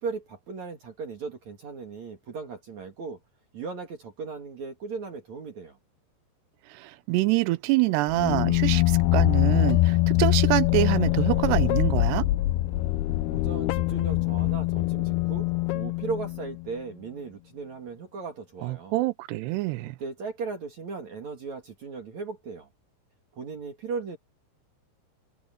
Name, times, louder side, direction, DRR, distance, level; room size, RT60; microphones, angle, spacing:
voice 1, 0.0-3.2 3.5-5.8 13.3-19.0 20.0-22.7 23.3-24.2, right 4 dB, 50° right, 2.9 m, -37 dB
voice 2, 6.7-12.3 18.6-20.0, right 19 dB, 80° right, 2.7 m, -26 dB
sound 1, 8.1-16.7, left 17 dB, 85° left, 2.3 m, -24 dB
omnidirectional pair, 5.2 m